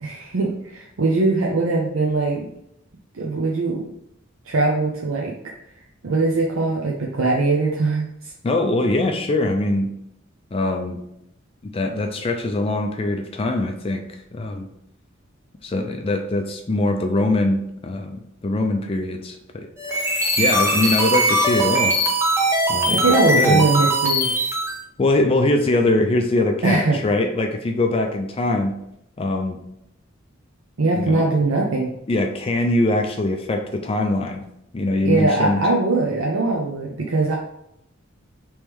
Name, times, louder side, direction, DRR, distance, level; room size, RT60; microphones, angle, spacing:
voice 1, 0.0-2.5 3.1-3.8 4.5-5.5 6.0-8.3 22.9-24.3 26.6-27.0 30.8-31.9 35.0-37.4, right 3 dB, 80° right, -2 dB, 0.6 m, -21 dB
voice 2, 8.4-9.9 10.5-11.0 11.7-14.0 14.3-14.7 15.6-19.7 20.4-22.0 22.7-23.7 25.0-28.7 29.2-29.6 30.9-31.2 32.1-34.4 34.7-35.6, left 2 dB, 30° left, 4 dB, 0.4 m, -22 dB
sound 1, 19.8-24.8, right 1 dB, 15° right, 0.7 m, -20 dB
3.5 x 3.1 x 4.5 m, 0.78 s
head